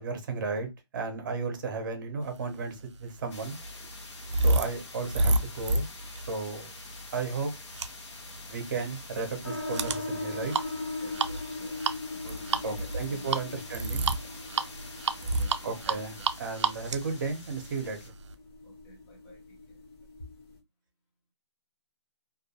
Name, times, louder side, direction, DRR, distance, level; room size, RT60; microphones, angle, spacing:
voice 1, 0.0-3.6 4.4-5.9 6.3-6.7 7.1-7.5 8.5-10.5 12.6-14.1 15.6-18.0, right 4 dB, 45° right, 0.7 m, -34 dB
sound 1, 2.7-18.3, right 3 dB, 80° right, 0.4 m, -31 dB
sound 2, 3.3-18.1, left 3 dB, 70° left, 0.7 m, -47 dB
sound 3, 9.4-20.6, left 2 dB, 50° left, 1.1 m, -40 dB
voice 2, 11.0-11.8 12.1-13.4 14.4-14.8 15.2-16.0 18.6-19.9, right 2 dB, 10° left, 0.4 m, -54 dB
2.3 x 2.1 x 2.7 m
hypercardioid pair, 165°, 15 cm